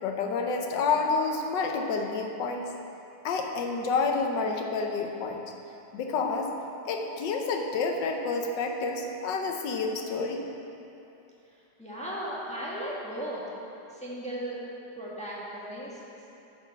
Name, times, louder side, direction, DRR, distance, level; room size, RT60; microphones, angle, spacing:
voice 1, 0.0-2.7 3.2-5.4 5.9-6.5 6.8-10.4, left 4 dB, 75° left, 2 dB, 1.5 m, -29 dB
voice 2, 11.8-13.4 13.9-14.6 15.0-16.0, right 1 dB, 5° left, -6 dB, 1.2 m, -36 dB
10.0 x 4.4 x 6.9 m, 2.9 s
omnidirectional pair, 2.0 m